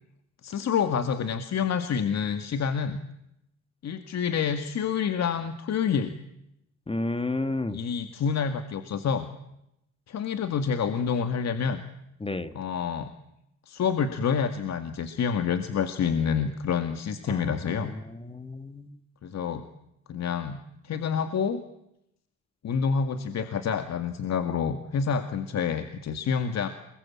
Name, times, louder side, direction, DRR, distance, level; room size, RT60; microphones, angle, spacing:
voice 1, 0.4-3.0 3.8-6.1 7.7-9.3 10.1-11.8 12.5-13.1 13.7-17.9 19.2-19.7 20.1-21.6 22.6-26.7, left 6 dB, 60° left, 9 dB, 2.1 m, -28 dB
voice 2, 6.9-7.8 12.2-12.5 17.3-19.0, left 2 dB, 20° left, 11 dB, 1.9 m, -32 dB
28.0 x 22.0 x 8.7 m, 0.82 s
cardioid pair, 90°, 30 cm